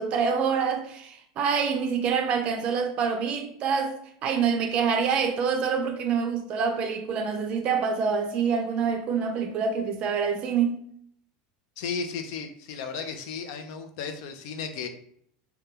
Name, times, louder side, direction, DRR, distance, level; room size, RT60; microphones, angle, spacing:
voice 1, 0.0-10.8, right 6 dB, 40° right, 0.4 m, -26 dB
voice 2, 11.8-14.9, left 5 dB, 70° left, 0.5 m, -34 dB
2.7 x 2.2 x 3.5 m
supercardioid pair, 140°, 3 cm